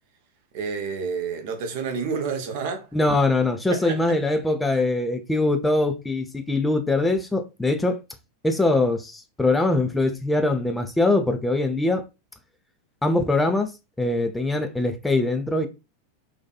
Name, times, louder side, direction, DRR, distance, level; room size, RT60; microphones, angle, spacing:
voice 1, 0.5-2.9 3.7-4.0, right 5 dB, 50° right, 0.6 m, -29 dB
voice 2, 2.9-8.0 8.4-12.0 13.0-13.7 14.0-15.7, left 2 dB, 5° left, 0.4 m, -22 dB
2.6 x 2.3 x 2.2 m
figure-of-eight pair, 90°, 0 cm